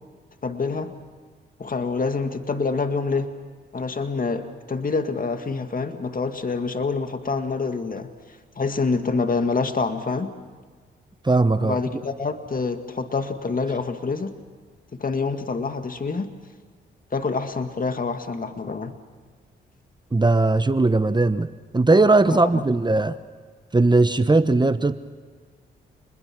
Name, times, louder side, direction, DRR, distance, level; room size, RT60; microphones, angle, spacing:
voice 1, 0.4-0.9 1.6-3.3 3.7-8.1 8.6-10.3 11.6-14.3 15.0-16.3 17.1-19.0 22.3-22.6, left 4 dB, 40° left, 7 dB, 2.0 m, -26 dB
voice 2, 11.2-11.8 20.1-21.5 21.7-23.2 23.7-24.9, right 2 dB, 20° right, 12 dB, 1.1 m, -18 dB
28.5 x 21.5 x 6.1 m, 1.5 s
supercardioid pair, 50°, 21 cm